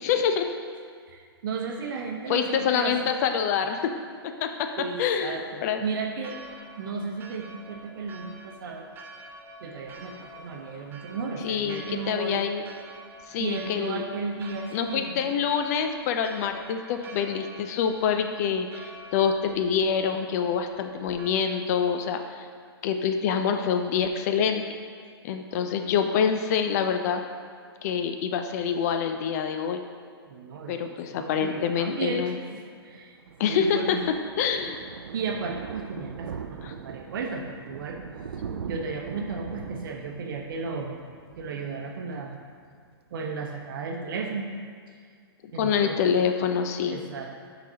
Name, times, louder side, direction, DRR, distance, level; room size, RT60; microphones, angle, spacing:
voice 1, 0.0-0.5 2.3-3.9 4.2-4.7 5.0-5.8 11.4-12.6 13.3-14.0 14.7-22.5 22.8-24.6 25.2-27.2 27.8-29.8 30.7-32.3 33.4-34.8 36.6-36.7 45.6-47.0, left 7 dB, 40° left, 6 dB, 0.4 m, -26 dB
voice 2, 1.1-3.1 3.6-3.7 4.8-6.4 6.8-8.9 9.6-12.4 13.4-15.3 30.3-33.2 33.5-34.0 35.1-38.0 38.6-40.9 41.4-42.4 43.1-44.5 45.5-46.0 46.9-47.3, right 4 dB, 55° right, 2 dB, 0.9 m, -34 dB
Church bell, 6.2-21.3, right 2 dB, 15° right, 0.5 m, -47 dB
Thunder, 32.9-42.3 42.6-42.9 43.2-43.3 43.5-43.6, right 7 dB, 80° right, 0.4 m, -41 dB
9.5 x 4.0 x 2.8 m, 2.1 s
hypercardioid pair, 130°, 13 cm